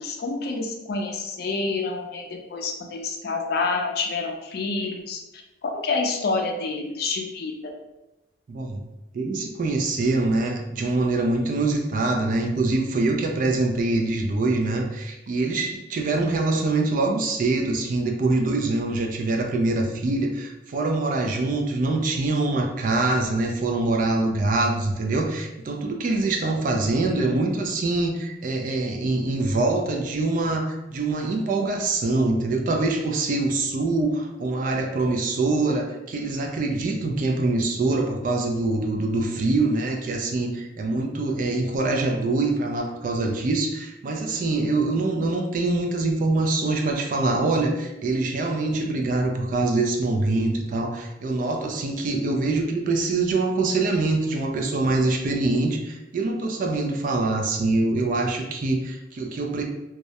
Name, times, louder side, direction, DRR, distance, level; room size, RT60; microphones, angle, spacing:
voice 1, 0.0-5.2 5.6-7.5, left 3 dB, 55° left, 2 dB, 0.4 m, -28 dB
voice 2, 8.5-8.8 9.1-59.6, right 2 dB, 45° right, 2 dB, 0.3 m, -24 dB
2.3 x 2.0 x 2.8 m, 0.97 s
head